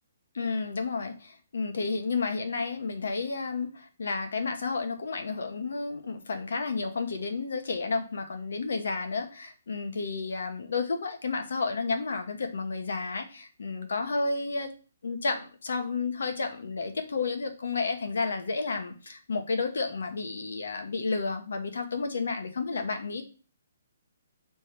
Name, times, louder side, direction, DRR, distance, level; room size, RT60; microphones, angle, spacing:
voice 1, 0.3-14.7 15.0-23.2, left 4 dB, 75° left, 6 dB, 1.3 m, -31 dB
8.3 x 3.5 x 4.5 m, 0.37 s
hypercardioid pair, 170°, 0 cm